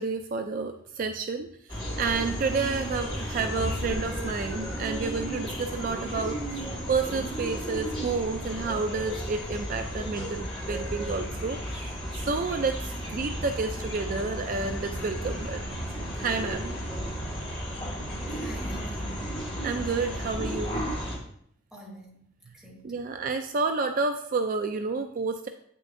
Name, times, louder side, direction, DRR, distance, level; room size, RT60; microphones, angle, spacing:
voice 1, 0.0-6.6 6.9-15.7 16.2-16.7 19.6-20.8 22.8-25.5, right 4 dB, 45° right, 7 dB, 0.3 m, -30 dB
sound 1, 1.7-21.2, equal, 25° left, 1.7 m, -34 dB
voice 2, 18.3-19.3 21.7-22.3 22.5-22.9, right 1 dB, ahead, -4 dB, 1.3 m, -46 dB
8.2 x 6.4 x 2.6 m, 0.67 s
head